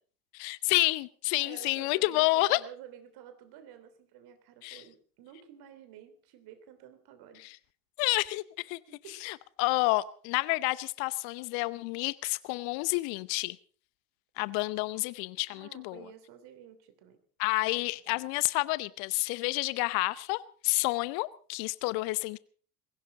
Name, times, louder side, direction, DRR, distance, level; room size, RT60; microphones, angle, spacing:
voice 1, 0.3-2.6 4.6-4.8 7.4-7.5 8.0-8.8 9.2-13.6 14.4-16.1 17.4-22.4, left 22 dB, 50° left, 0.8 m, -29 dB
voice 2, 1.4-7.6 8.9-9.2 15.5-17.2 18.1-18.2, right 9 dB, 55° right, 3.3 m, -51 dB
21.0 x 16.5 x 3.9 m
figure-of-eight pair, 70°, 46 cm